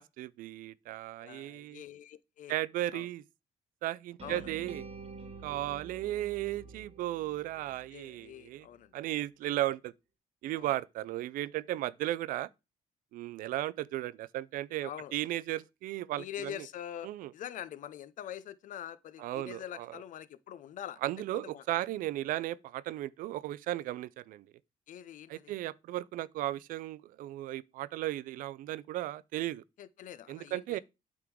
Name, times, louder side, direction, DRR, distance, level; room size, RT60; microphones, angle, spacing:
voice 1, 0.0-1.8 2.5-3.2 3.8-4.8 5.4-8.7 8.9-9.9 10.4-12.5 13.1-16.7 17.0-17.3 19.2-20.0 21.0-24.5 25.3-29.6 30.3-30.8, right 15 dB, 85° right, 0.4 m, -35 dB
voice 2, 1.2-2.5 2.9-3.1 4.2-4.5 7.9-8.9 10.5-10.7 14.8-15.1 16.2-21.0 21.3-21.6 24.9-25.5 29.8-30.8, left 10 dB, 70° left, 0.6 m, -44 dB
sound 1, 4.2-8.3, right 4 dB, 45° right, 1.3 m, -48 dB
8.4 x 3.7 x 4.6 m
cardioid pair, 95°, 14 cm